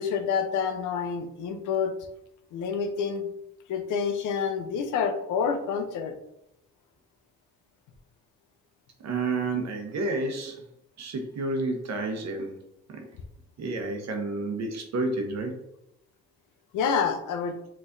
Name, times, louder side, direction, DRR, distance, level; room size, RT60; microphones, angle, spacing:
voice 1, 0.0-1.9 2.5-3.3 3.7-6.1 16.7-17.5, left 6 dB, 80° left, 6 dB, 0.7 m, -28 dB
voice 2, 9.0-10.7 11.0-12.6 12.9-13.0 13.6-15.6, right 2 dB, 60° right, 4 dB, 1.0 m, -30 dB
5.9 x 3.2 x 2.6 m, 0.82 s
cardioid pair, 90°, 30 cm